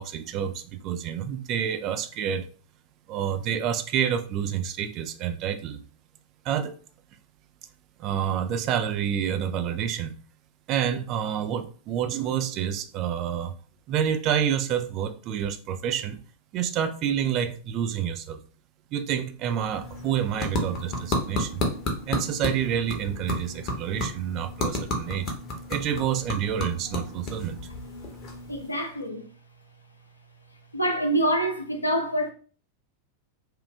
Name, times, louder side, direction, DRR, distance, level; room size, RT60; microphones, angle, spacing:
voice 1, 0.0-2.5 3.1-5.8 6.5-6.7 8.0-10.1 10.7-13.5 13.9-16.2 16.5-18.4 18.9-21.6 22.1-25.3 25.7-27.6, right 9 dB, 40° right, 0.3 m, -28 dB
sound 1, 19.4-28.9, left 1 dB, 35° left, 0.9 m, -32 dB
voice 2, 28.5-29.2 30.7-32.3, right 1 dB, 85° left, 0.6 m, -26 dB
2.9 x 2.3 x 3.3 m
figure-of-eight pair, 90°, 0 cm